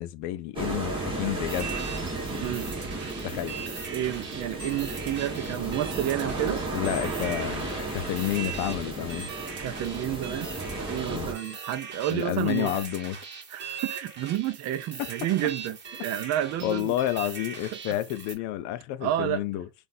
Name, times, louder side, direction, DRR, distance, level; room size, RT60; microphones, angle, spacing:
voice 1, 0.0-1.7 3.2-3.7 6.7-9.3 11.1-11.3 12.1-13.2 16.6-19.7, left 13 dB, 55° left, 0.5 m, -30 dB
sound 1, 0.6-11.3, right 2 dB, 15° right, 1.5 m, -34 dB
sound 2, 1.5-18.3, right 6 dB, 30° right, 1.3 m, -40 dB
voice 2, 3.9-6.6 9.6-10.5 10.9-12.8 13.5-16.9 19.0-19.4, right 12 dB, 50° right, 0.5 m, -30 dB
3.8 x 2.5 x 2.6 m
supercardioid pair, 120°, 35 cm